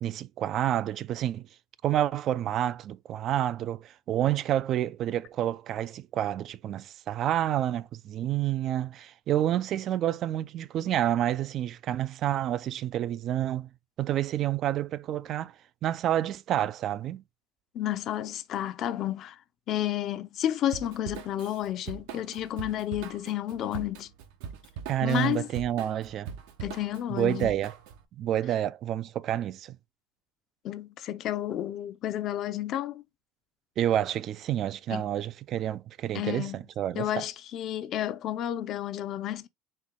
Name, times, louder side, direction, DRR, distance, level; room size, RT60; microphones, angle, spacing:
voice 1, 0.0-1.5 1.8-13.7 14.0-15.5 15.8-17.2 24.9-26.3 27.1-27.7 28.2-29.8 33.8-37.2, right 11 dB, 50° right, 0.4 m, -29 dB
voice 2, 17.7-19.4 19.7-24.1 25.0-25.5 26.6-27.5 30.6-33.0 34.9-35.0 36.1-36.6 36.9-39.5, left 12 dB, 55° left, 0.7 m, -31 dB
Drum kit / Drum, 20.7-28.0, right 7 dB, 85° right, 0.9 m, -42 dB
4.4 x 3.0 x 3.6 m
supercardioid pair, 110°, 0 cm